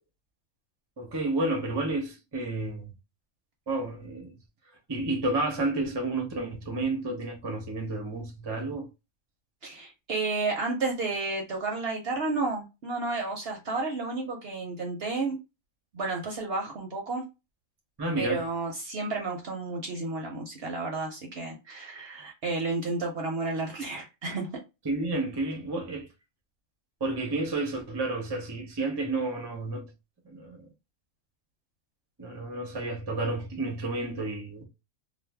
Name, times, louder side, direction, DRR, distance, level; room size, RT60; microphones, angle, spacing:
voice 1, 1.0-2.9 3.7-4.3 4.9-8.9 18.0-18.4 24.8-26.1 27.0-29.9 30.2-30.7 32.2-34.6, right 2 dB, 30° right, 0.5 m, -31 dB
voice 2, 9.6-15.4 15.9-17.2 18.1-24.6, right 3 dB, 55° right, 0.7 m, -31 dB
2.5 x 2.0 x 3.2 m
omnidirectional pair, 1.4 m